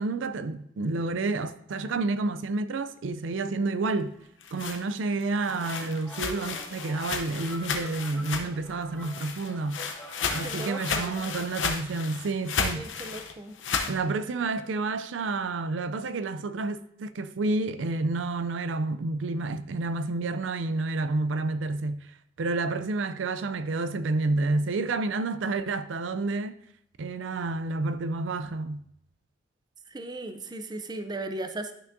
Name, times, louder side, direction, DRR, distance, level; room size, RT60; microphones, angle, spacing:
voice 1, 0.0-4.1 4.5-9.8 10.3-12.9 13.9-22.1 22.4-26.5 27.0-28.8, right 3 dB, 85° right, 0.4 m, -29 dB
sound 1, 4.2-8.7 9.0-14.0, left 5 dB, 90° left, 0.8 m, -33 dB
sound 2, 5.4-11.4, left 1 dB, 10° left, 1.1 m, -46 dB
voice 2, 10.4-11.3 12.7-13.5 29.9-31.7, right 2 dB, 20° right, 0.5 m, -37 dB
12.0 x 5.8 x 2.6 m
head